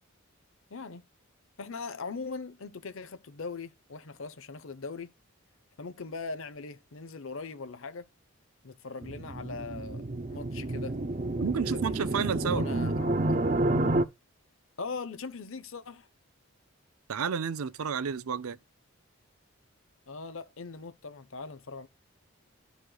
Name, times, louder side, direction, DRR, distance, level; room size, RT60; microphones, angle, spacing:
voice 1, 0.7-1.0 1.6-5.1 5.8-8.0 8.6-11.0 11.5-13.4 14.8-16.1 20.1-21.9, left 4 dB, 65° left, 0.8 m, -40 dB
sound 1, 9.0-14.0, right 2 dB, 35° right, 0.5 m, -29 dB
voice 2, 11.4-12.6 17.1-18.6, right 6 dB, 80° right, 0.5 m, -31 dB
13.0 x 5.1 x 2.3 m
head